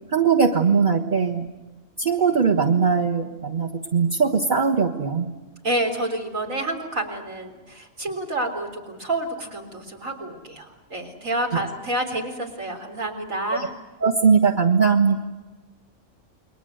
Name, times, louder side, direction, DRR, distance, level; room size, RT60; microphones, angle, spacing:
voice 1, 0.1-1.5 2.0-5.3 14.0-15.2, right 5 dB, 35° right, 0 dB, 1.5 m, -20 dB
voice 2, 5.6-13.7, right 1 dB, 75° right, 3 dB, 4.2 m, -29 dB
29.5 x 22.0 x 8.0 m, 1.2 s
omnidirectional pair, 1.4 m